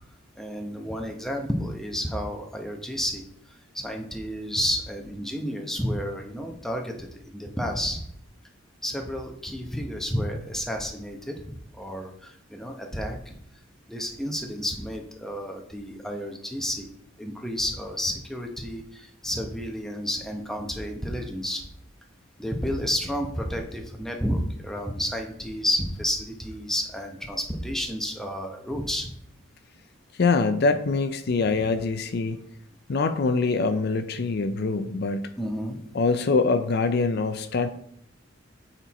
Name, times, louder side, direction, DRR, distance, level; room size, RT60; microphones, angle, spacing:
voice 1, 0.4-3.2 3.7-7.1 7.3-8.0 8.8-13.3 13.9-16.9 17.2-21.6 22.4-29.1 35.4-35.8, equal, ahead, 2 dB, 0.8 m, -31 dB
voice 2, 30.2-32.4 32.9-35.2 35.9-37.7, left 4 dB, 55° left, 9 dB, 0.5 m, -24 dB
7.9 x 4.5 x 4.1 m, 0.70 s
head